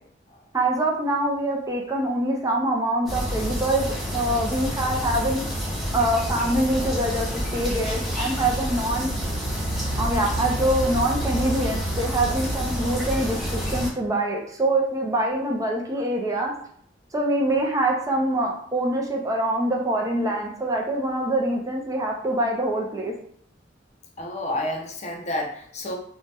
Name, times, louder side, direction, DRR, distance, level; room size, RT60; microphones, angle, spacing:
voice 1, 0.5-3.9 4.1-5.4 5.9-9.1 9.9-16.5 17.1-23.1, right 1 dB, 20° right, 0 dB, 0.4 m, -24 dB
sound 1, 3.1-13.9, equal, ahead, 0.8 m, -28 dB
voice 2, 24.2-26.0, left 1 dB, 40° left, 2 dB, 0.5 m, -30 dB
2.6 x 2.2 x 3.3 m, 0.64 s
head